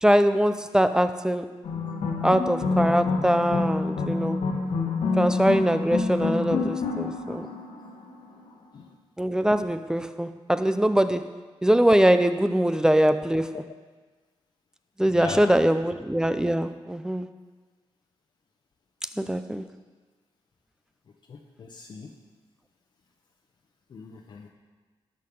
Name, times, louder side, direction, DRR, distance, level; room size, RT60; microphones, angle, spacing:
voice 1, 0.0-1.5 2.2-4.4 5.2-7.5 9.2-11.2 11.6-13.6 15.0-17.3 19.2-19.6, equal, 5° right, 10 dB, 0.4 m, -22 dB
sound 1, 1.6-8.3, left 4 dB, 85° left, 1.7 m, -27 dB
voice 2, 15.1-15.6 21.3-22.1 23.9-24.5, left 5 dB, 50° left, 0 dB, 0.9 m, -39 dB
18.5 x 6.6 x 5.3 m, 1.4 s
wide cardioid pair, 150°, 10 cm